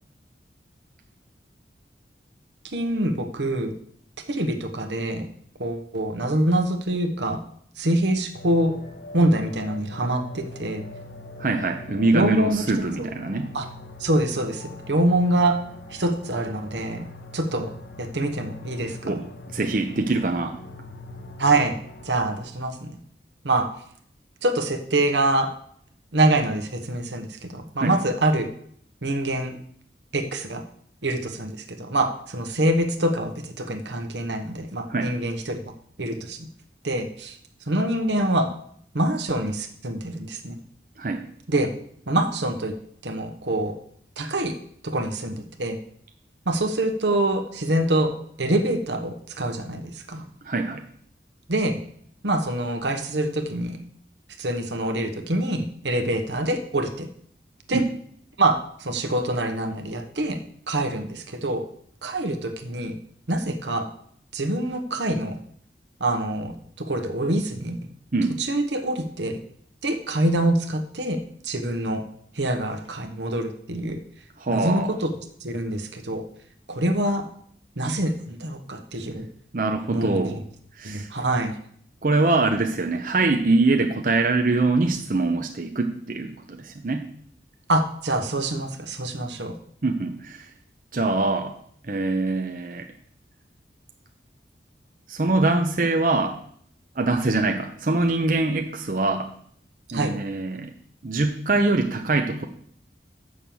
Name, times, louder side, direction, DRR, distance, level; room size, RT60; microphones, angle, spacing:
voice 1, 2.6-3.7 4.3-5.3 5.6-7.4 7.8-8.7 9.1-10.8 12.1-12.6 13.0-13.1 13.5-13.7 14.0-15.6 15.9-17.1 17.3-17.7 18.0-19.2 21.4-21.8 22.0-23.0 23.4-23.7 24.4-25.5 26.1-28.5 29.0-29.6 30.1-30.6 31.0-35.6 36.0-36.5 36.8-37.4 37.7-38.5 38.9-40.6 41.5-41.7 42.1-42.7 43.0-43.7 44.2-44.5 44.8-45.8 46.5-48.1 48.4-50.3 51.5-51.8 52.2-53.8 54.4-57.1 57.7-57.8 58.4-60.4 60.7-61.6 62.0-63.0 63.3-63.9 64.3-65.4 66.0-67.8 68.4-69.4 69.8-71.2 71.4-72.0 72.3-74.0 74.5-75.1 75.4-76.2 76.7-77.2 77.8-79.3 79.9-80.3 80.8-81.6 87.7-89.5 99.9-100.1, right 1 dB, 85° right, 6 dB, 1.2 m, -25 dB
sound 1, 8.3-22.5, left 2 dB, 70° left, 1.0 m, -42 dB
voice 2, 11.4-13.5 19.0-19.2 19.5-20.6 27.8-27.9 34.9-35.1 41.0-41.2 50.5-50.8 57.7-57.9 68.1-68.4 74.4-74.9 79.5-80.4 80.8-81.1 82.0-87.1 89.8-90.5 90.9-91.5 91.9-92.9 95.1-96.3 97.0-99.3 99.9-100.7 101.0-102.5, right 3 dB, 50° right, 5 dB, 0.7 m, -23 dB
7.6 x 6.4 x 7.0 m, 0.63 s
head